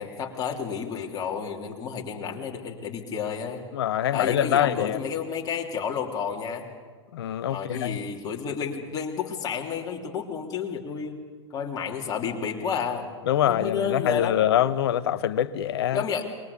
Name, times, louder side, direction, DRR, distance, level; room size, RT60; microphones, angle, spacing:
voice 1, 0.0-3.7 4.1-6.7 7.5-11.2 11.5-13.1 13.4-14.4 15.9-16.2, left 6 dB, 25° left, 3.3 m, -31 dB
voice 2, 3.7-5.0 7.1-8.0 13.3-16.0, left 11 dB, 55° left, 1.1 m, -24 dB
27.5 x 22.5 x 6.9 m
figure-of-eight pair, 100°, 16 cm